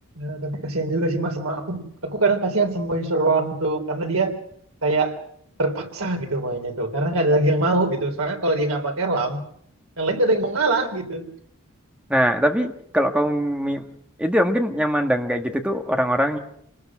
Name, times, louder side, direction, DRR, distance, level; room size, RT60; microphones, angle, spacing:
voice 1, 0.2-4.4 4.8-5.2 5.6-9.5 10.0-11.2, right 2 dB, 90° right, 4 dB, 3.7 m, -23 dB
voice 2, 12.1-13.8 14.2-16.4, equal, 5° right, 4 dB, 1.6 m, -22 dB
27.0 x 19.0 x 6.2 m, 0.69 s
head